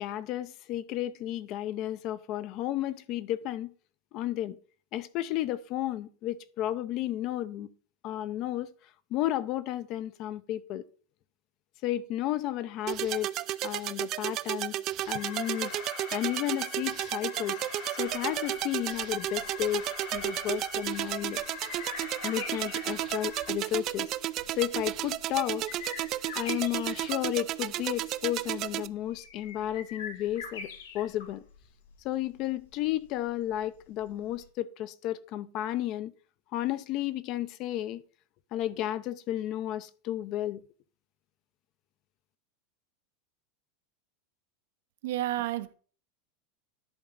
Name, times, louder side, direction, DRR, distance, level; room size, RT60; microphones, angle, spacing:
voice 1, 0.0-3.7 4.1-4.6 4.9-7.7 8.0-8.7 9.1-10.8 11.8-13.3 13.6-14.7 15.1-15.8 16.1-17.6 17.9-19.8 20.1-21.4 22.2-24.1 24.5-25.7 26.3-31.4 32.0-36.1 36.5-38.0 38.5-40.6, left 13 dB, 45° left, 0.6 m, -32 dB
sound 1, 12.9-28.9, right 14 dB, 40° right, 0.4 m, -33 dB
Alarm, 15.0-23.5, left 4 dB, 65° left, 3.1 m, -43 dB
sound 2, 18.0-34.5, left 5 dB, 90° left, 1.7 m, -46 dB
voice 2, 45.0-45.7, right 14 dB, 75° right, 0.8 m, -30 dB
10.5 x 3.8 x 5.5 m
supercardioid pair, 150°, 0 cm